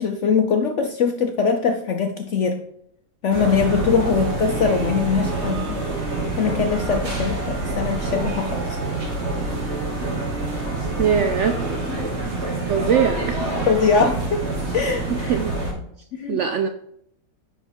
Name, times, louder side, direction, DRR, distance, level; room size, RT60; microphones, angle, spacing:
voice 1, 0.0-2.6 3.2-6.1 6.4-8.8 13.7-14.4 14.7-15.4 16.1-16.4, left 5 dB, 65° left, 5 dB, 0.8 m, -22 dB
sound 1, 3.3-15.7, right 2 dB, 45° right, 1.8 m, -26 dB
voice 2, 11.0-11.6 12.7-13.5 15.1-15.6 16.3-16.7, right 7 dB, 70° right, 7 dB, 0.7 m, -21 dB
10.0 x 3.9 x 4.5 m, 0.71 s
omnidirectional pair, 1.7 m